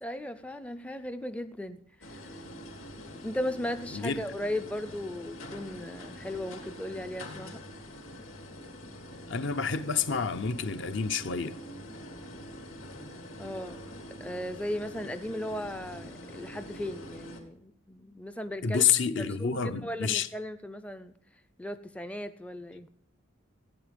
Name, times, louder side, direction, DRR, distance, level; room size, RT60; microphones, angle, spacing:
voice 1, 0.0-2.3 3.2-7.6 13.4-13.8 14.2-18.8 19.2-21.1 21.6-22.9, left 1 dB, 5° left, 0.4 m, -37 dB
sound 1, 2.0-17.4, equal, 75° left, 3.4 m, -45 dB
voice 2, 9.3-11.6 18.6-20.3, left 6 dB, 60° left, 0.7 m, -28 dB
16.0 x 9.2 x 5.2 m
head